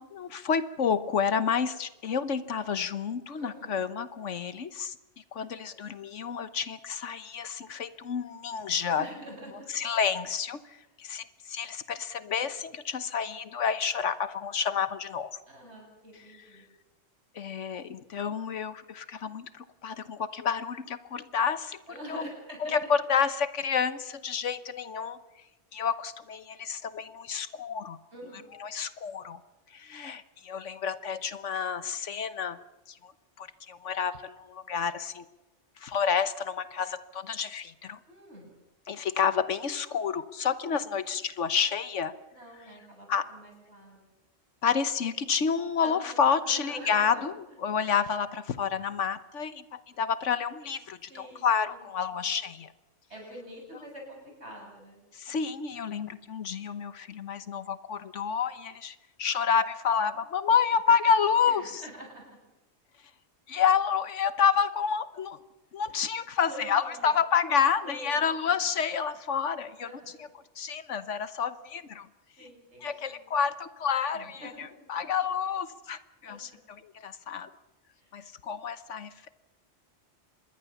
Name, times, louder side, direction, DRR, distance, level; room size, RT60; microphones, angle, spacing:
voice 1, 0.0-4.9 5.3-9.0 9.7-10.6 11.0-15.4 17.3-22.3 22.6-25.2 25.7-28.0 28.6-29.4 29.7-32.6 33.0-33.1 33.4-35.2 35.8-38.0 38.9-42.1 43.1-43.2 44.6-47.3 47.6-52.7 55.1-61.8 63.5-65.4 65.7-69.9 70.2-70.3 70.6-72.1 72.8-74.4 74.9-76.5 76.9-77.5 78.1-79.3, left 7 dB, 80° left, 13 dB, 1.4 m, -29 dB
voice 2, 3.4-3.8 9.0-9.7 15.5-16.7 21.9-22.7 28.1-28.5 38.1-38.5 42.3-44.1 45.8-47.2 51.1-52.3 53.1-55.0 61.4-62.4 65.9-66.0 66.5-67.1 67.8-68.6 69.8-70.3 72.4-73.2 74.1-74.7 74.9-75.1 76.2-76.6 78.0-78.1, right 1 dB, 60° right, 1 dB, 7.9 m, -46 dB
26.0 x 21.5 x 7.1 m, 0.98 s
omnidirectional pair, 1.3 m